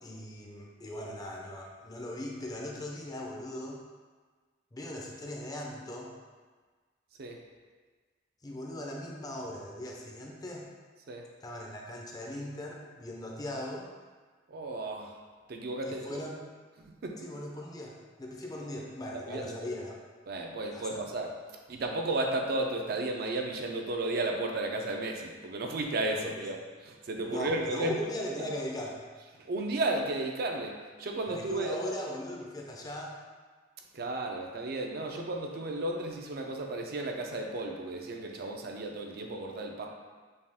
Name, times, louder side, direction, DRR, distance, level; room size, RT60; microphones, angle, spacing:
voice 1, 0.0-3.8 4.7-6.1 8.4-10.7 11.4-13.9 15.8-16.4 17.2-19.9 20.7-21.1 26.2-26.4 27.3-29.0 31.3-33.2, left 1 dB, 20° left, -1 dB, 0.5 m, -39 dB
voice 2, 14.5-15.2 15.5-16.2 16.8-17.2 19.3-19.7 20.3-21.3 21.7-28.0 28.4-28.5 29.4-31.8 33.9-39.9, right 2 dB, 60° right, 2 dB, 0.5 m, -33 dB
5.3 x 2.3 x 3.4 m, 1.4 s
head